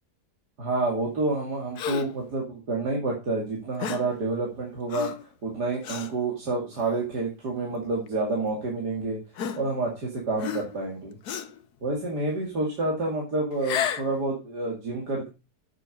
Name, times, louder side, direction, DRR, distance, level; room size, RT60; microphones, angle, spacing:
voice 1, 0.6-5.1 5.4-9.2 9.6-11.2 11.8-15.3, right 2 dB, 70° right, -2 dB, 3.0 m, -28 dB
Gasp, 1.8-2.2 3.8-4.2 4.9-5.3 5.8-6.1 6.8-7.0 8.1-8.2 9.4-10.0 10.4-10.9 11.2-11.6 13.5-14.1, left 9 dB, 70° left, 1.4 m, -32 dB
8.5 x 6.9 x 5.2 m, 0.28 s
omnidirectional pair, 1.8 m